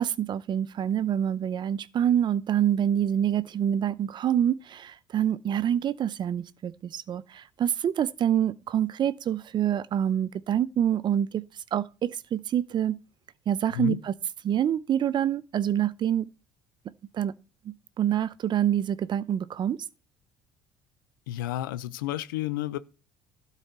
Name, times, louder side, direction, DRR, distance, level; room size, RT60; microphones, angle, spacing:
voice 1, 0.0-11.4 11.7-13.0 13.5-14.1 14.4-16.3 17.1-17.3 17.7-19.8, right 10 dB, 45° right, 0.7 m, -26 dB
voice 2, 21.3-22.8, left 14 dB, 85° left, 0.7 m, -31 dB
12.5 x 4.2 x 8.0 m
hypercardioid pair, 70°, 11 cm